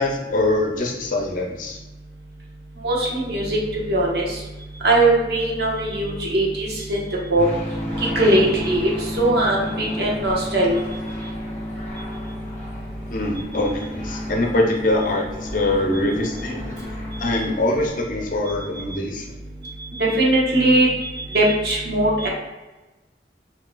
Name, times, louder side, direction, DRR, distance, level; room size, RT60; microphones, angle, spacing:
voice 1, 0.0-1.8 13.1-16.9 17.2-19.2, left 1 dB, 45° left, 0 dB, 0.7 m, -23 dB
voice 2, 2.8-4.4 4.8-7.0 7.3-7.4 8.0-10.7 20.0-20.9 21.3-22.3, right 1 dB, 65° right, -3 dB, 1.1 m, -20 dB
sound 1, 7.4-17.9, left 1 dB, 15° left, 1.4 m, -32 dB
6.3 x 2.8 x 2.3 m, 1.1 s
head